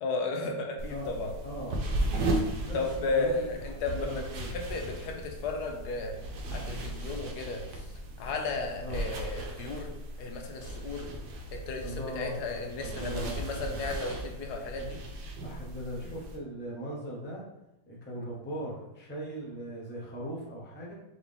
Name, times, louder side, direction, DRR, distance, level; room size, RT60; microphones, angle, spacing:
voice 1, 0.0-1.3 2.7-4.2 4.5-6.1 6.5-7.8 8.2-9.9 10.2-11.1 11.5-15.0 18.1-18.3, left 3 dB, 75° left, 3 dB, 1.2 m, -34 dB
sound 1, 0.8-16.4, right 1 dB, 75° right, 1.2 m, -36 dB
voice 2, 1.4-1.8 2.6-2.8 3.1-4.6 8.8-9.1 11.8-13.4 14.8-14.9 15.4-17.4 17.9-20.9, equal, 10° left, -4 dB, 0.5 m, -39 dB
3.9 x 2.9 x 3.4 m, 0.89 s
omnidirectional pair, 1.8 m